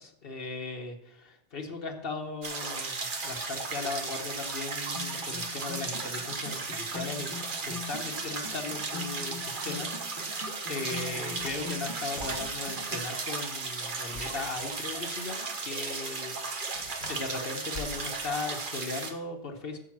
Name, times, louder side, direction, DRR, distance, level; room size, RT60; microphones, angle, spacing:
voice 1, 0.0-7.3 7.6-10.4 10.7-16.6 17.1-19.8, left 3 dB, 70° left, 3 dB, 1.2 m, -38 dB
sound 1, 2.4-19.1, right 4 dB, 55° right, 1.3 m, -35 dB
sound 2, 5.0-13.0, left 5 dB, 25° left, 1.0 m, -42 dB
sound 3, 7.5-8.8 10.8-12.7 14.0-15.2 16.4-18.4, left 2 dB, 90° left, 1.5 m, -48 dB
8.8 x 6.9 x 5.9 m, 0.80 s
omnidirectional pair, 1.0 m